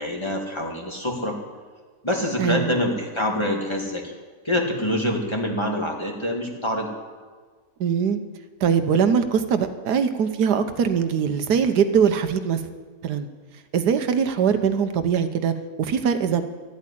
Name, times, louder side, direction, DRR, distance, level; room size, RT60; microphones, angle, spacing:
voice 1, 0.0-1.4 2.0-4.1 4.4-6.9, left 1 dB, 15° left, 0 dB, 2.0 m, -25 dB
voice 2, 2.4-2.7 7.8-8.2 8.6-12.6 13.0-13.3 13.7-16.4, right 7 dB, 80° right, 9 dB, 1.4 m, -22 dB
13.5 x 8.5 x 9.9 m, 1.5 s
omnidirectional pair, 1.7 m